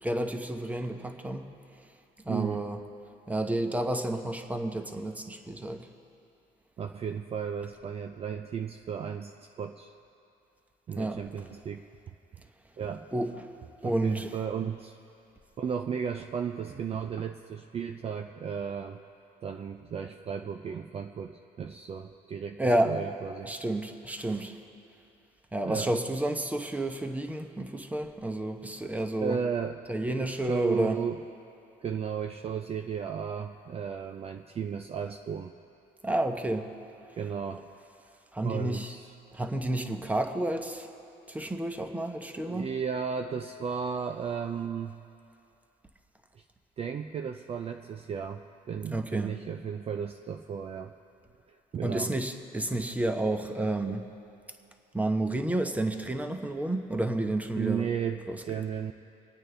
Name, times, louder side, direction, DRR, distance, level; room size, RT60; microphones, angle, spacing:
voice 1, 0.0-1.5 2.2-2.8 3.3-5.9 11.0-11.2 13.1-13.5 13.8-14.3 22.6-23.0 23.5-24.6 25.5-29.4 29.9-31.0 36.0-36.7 38.3-38.9 39.3-40.9 41.3-42.7 48.9-49.4 51.8-54.0 54.9-57.9 58.3-58.4, right 1 dB, 10° right, 6 dB, 0.9 m, -30 dB
voice 2, 2.3-2.7 6.8-9.9 10.9-11.8 12.8-13.1 13.8-15.0 15.6-19.0 19.4-23.5 25.6-25.9 29.2-29.8 30.1-31.2 31.8-35.5 37.1-37.7 38.4-39.1 42.3-45.0 46.3-46.4 46.8-50.9 51.5-52.1 57.5-58.9, right 7 dB, 35° right, 6 dB, 0.4 m, -34 dB
26.5 x 8.9 x 3.4 m, 2.6 s
cardioid pair, 110°, 17 cm